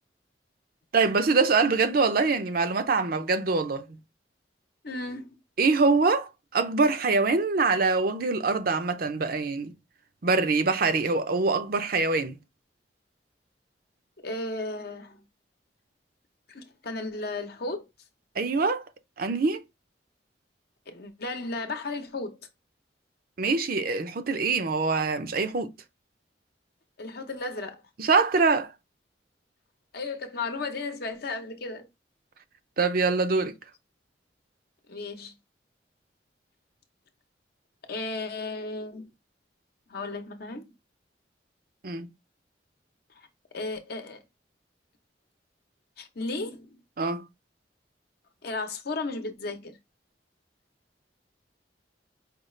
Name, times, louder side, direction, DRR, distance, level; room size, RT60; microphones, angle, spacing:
voice 1, 0.9-4.0 5.6-9.7 10.2-12.4 18.4-18.8 19.2-19.6 23.4-25.7 28.0-28.7 32.8-33.5 41.8-42.1 47.0-47.3, right 4 dB, 55° right, 0.6 m, -24 dB
voice 2, 4.8-5.4 14.2-15.2 16.5-17.9 20.9-22.4 27.0-27.8 29.9-31.9 34.9-35.3 37.9-39.1 39.9-40.7 43.2-43.3 43.5-44.2 46.0-46.8 48.4-49.8, left 3 dB, 60° left, 0.8 m, -34 dB
5.1 x 2.4 x 3.1 m
head